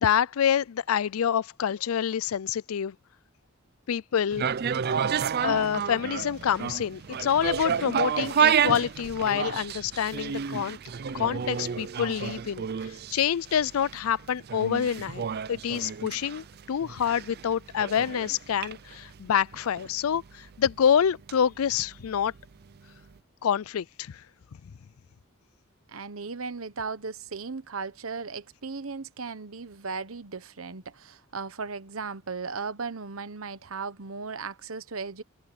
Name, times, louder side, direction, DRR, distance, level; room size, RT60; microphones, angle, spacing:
voice 1, 0.0-2.9 3.9-4.5 4.9-5.1 5.4-10.8 11.1-15.2 15.5-22.3 23.4-24.2, left 8 dB, 85° left, 0.4 m, -27 dB
sound 1, 4.3-22.4 22.8-22.9, right 7 dB, 50° right, 0.5 m, -30 dB
voice 2, 25.9-35.2, right 4 dB, 80° right, 1.1 m, -36 dB
head